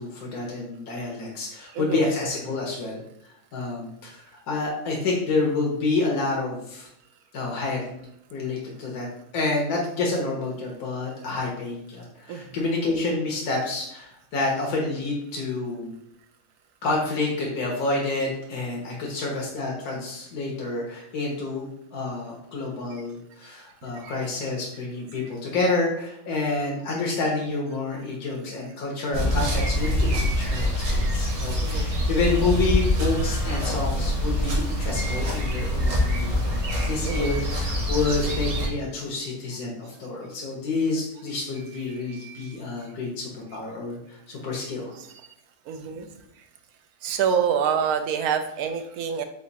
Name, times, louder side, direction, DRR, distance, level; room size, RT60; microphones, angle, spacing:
voice 1, 0.0-3.0 3.5-6.9 7.3-8.0 8.3-9.1 9.3-15.9 16.8-36.6 36.8-44.9, left 3 dB, 85° left, -2 dB, 1.4 m, -28 dB
sound 1, 29.1-38.7, left 1 dB, 60° right, 1.5 m, -25 dB
voice 2, 42.1-42.6 45.7-46.1 47.0-49.2, right 7 dB, 85° right, 7 dB, 1.1 m, -27 dB
5.1 x 2.5 x 4.0 m, 0.75 s
omnidirectional pair, 1.6 m